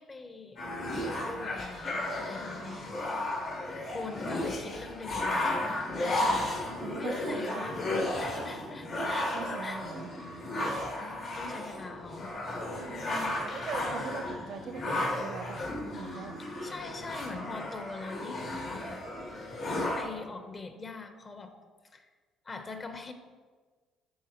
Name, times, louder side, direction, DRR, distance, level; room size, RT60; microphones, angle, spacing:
voice 1, 0.0-3.3 3.9-5.8 6.9-9.8 11.0-13.5 16.4-19.0 19.7-21.6 21.8-22.1 22.4-23.1, left 3 dB, 35° left, 7 dB, 1.0 m, -43 dB
sound 1, 0.6-20.0, left 1 dB, 60° left, 2.4 m, -34 dB
voice 2, 5.9-6.4 6.8-7.7 9.1-10.1 12.6-15.6 15.9-16.4, right 6 dB, 60° right, 8 dB, 0.7 m, -42 dB
12.5 x 4.8 x 3.1 m, 1.4 s
hypercardioid pair, 55°, 0 cm